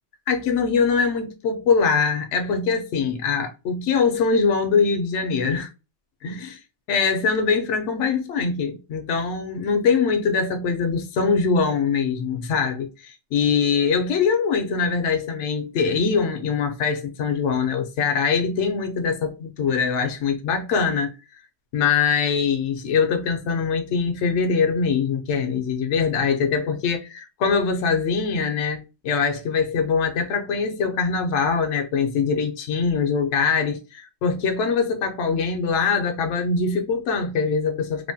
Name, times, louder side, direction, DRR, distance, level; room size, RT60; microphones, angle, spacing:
voice 1, 0.3-5.7 6.2-6.6 6.9-21.1 21.7-38.1, left 5 dB, 75° left, 0.9 m, -23 dB
3.2 x 2.1 x 2.6 m
omnidirectional pair, 1.2 m